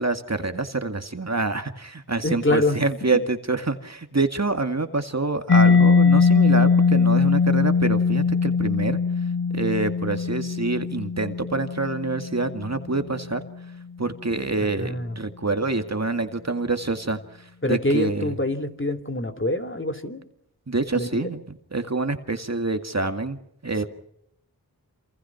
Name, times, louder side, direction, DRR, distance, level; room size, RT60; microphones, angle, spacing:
voice 1, 0.0-9.0 9.5-13.4 14.0-18.3 20.7-23.8, right 3 dB, 45° right, 7 dB, 2.1 m, -26 dB
voice 2, 2.2-2.8 14.8-15.2 17.6-20.2 20.9-21.3 23.8-23.9, left 1 dB, 30° left, 6 dB, 2.9 m, -25 dB
Mallet percussion, 5.5-13.0, left 5 dB, 90° left, 1.2 m, -20 dB
28.0 x 27.0 x 5.9 m, 0.77 s
wide cardioid pair, 60°, 37 cm